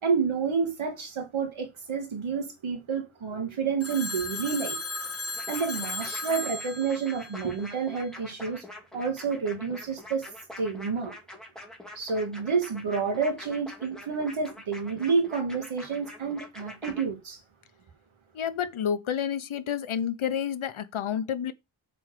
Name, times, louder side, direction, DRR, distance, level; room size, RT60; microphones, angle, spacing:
voice 1, 0.0-4.8 5.5-8.6 8.9-10.3 10.6-11.1 12.0-17.4, right 5 dB, 80° right, 2.5 m, -29 dB
Telephone, 3.8-8.0, left 2 dB, 30° left, 1.4 m, -36 dB
sound 1, 5.3-17.0, left 1 dB, ahead, 2.4 m, -45 dB
voice 2, 18.3-21.5, left 8 dB, 85° left, 1.1 m, -29 dB
7.4 x 4.7 x 6.7 m
wide cardioid pair, 130°, 47 cm